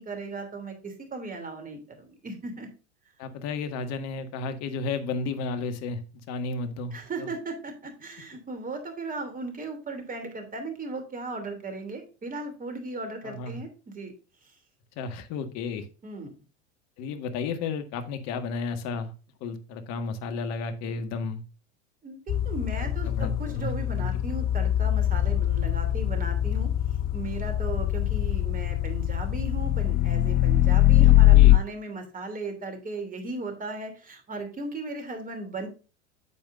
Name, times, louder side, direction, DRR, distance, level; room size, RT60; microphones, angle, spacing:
voice 1, 0.0-2.7 6.9-14.1 16.0-16.3 22.0-26.7 27.1-35.7, right 3 dB, 25° right, 6 dB, 3.0 m, -36 dB
voice 2, 3.2-7.3 13.2-13.6 14.9-15.8 17.0-19.1 19.4-21.4 23.0-23.7 31.0-31.5, left 4 dB, 45° left, 8 dB, 1.7 m, -33 dB
sound 1, 22.3-31.6, left 13 dB, 25° left, 0.4 m, -22 dB
9.7 x 7.6 x 2.6 m, 0.33 s
hypercardioid pair, 85°, 36 cm